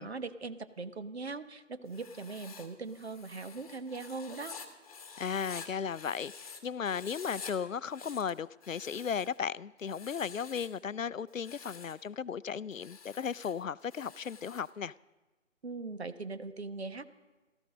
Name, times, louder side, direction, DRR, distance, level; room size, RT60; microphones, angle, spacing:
voice 1, 0.0-4.5 15.6-17.1, right 3 dB, 55° right, 11 dB, 1.0 m, -40 dB
Writing, 1.9-6.6 6.8-7.5 7.8-9.4 9.8-10.8 11.3-12.0 12.7-14.7, left 5 dB, 30° left, 1.3 m, -49 dB
voice 2, 5.2-14.9, left 7 dB, 75° left, 20 dB, 0.5 m, -36 dB
16.0 x 13.5 x 6.4 m, 1.2 s
figure-of-eight pair, 150°, 39 cm